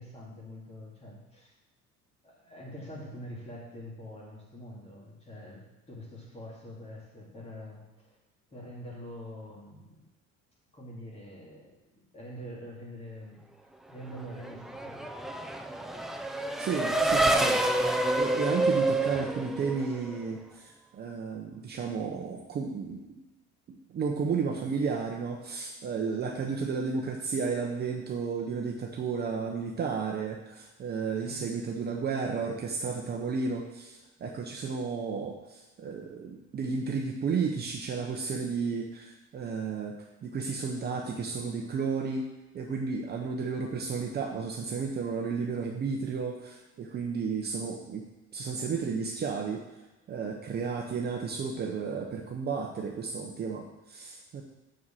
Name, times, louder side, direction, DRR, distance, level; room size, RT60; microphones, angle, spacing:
voice 1, 0.0-1.5 2.2-8.2 8.5-10.1 10.7-13.4 13.9-15.0 31.2-31.5, equal, 20° left, -4 dB, 2.7 m, -45 dB
Race car auto racing / Accelerating revving vroom, 14.2-20.3, right 2 dB, ahead, 0.3 m, -28 dB
voice 2, 16.6-17.6 18.1-23.2 23.9-42.3 42.5-48.1 48.3-49.6 50.1-54.4, right 5 dB, 35° right, 1 dB, 0.9 m, -33 dB
7.0 x 6.4 x 7.5 m, 1.1 s
cardioid pair, 170°, 30 cm